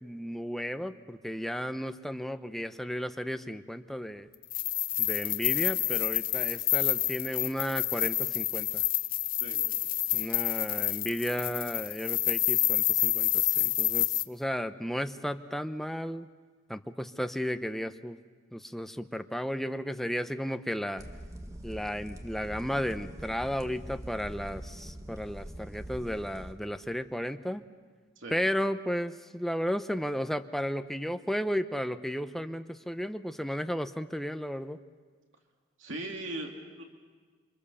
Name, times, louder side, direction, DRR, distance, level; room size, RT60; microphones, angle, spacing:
voice 1, 0.0-4.3 5.0-8.8 10.1-16.3 16.7-18.2 18.5-21.1 21.6-27.6 28.3-34.8, equal, ahead, 9 dB, 0.8 m, -34 dB
sound 1, 4.4-14.2, left 14 dB, 45° left, 0.7 m, -28 dB
sound 2, 21.0-26.5, right 1 dB, 15° right, 1.5 m, -43 dB
voice 2, 35.8-36.8, right 1 dB, 70° right, 2 dB, 2.6 m, -39 dB
28.0 x 25.5 x 7.1 m, 1.5 s
head